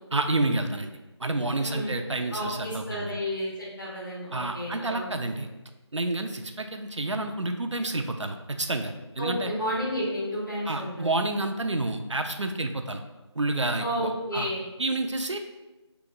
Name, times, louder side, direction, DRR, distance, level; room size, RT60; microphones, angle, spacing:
voice 1, 0.1-3.1 4.3-5.5 5.9-9.5 10.7-13.0 13.4-14.5 14.8-15.4, right 2 dB, 85° right, 6 dB, 0.5 m, -29 dB
voice 2, 1.6-2.0 2.3-5.2 9.2-11.1 13.8-14.6, equal, 45° left, -6 dB, 1.3 m, -31 dB
3.4 x 2.9 x 3.6 m, 1.1 s
figure-of-eight pair, 170°, 15 cm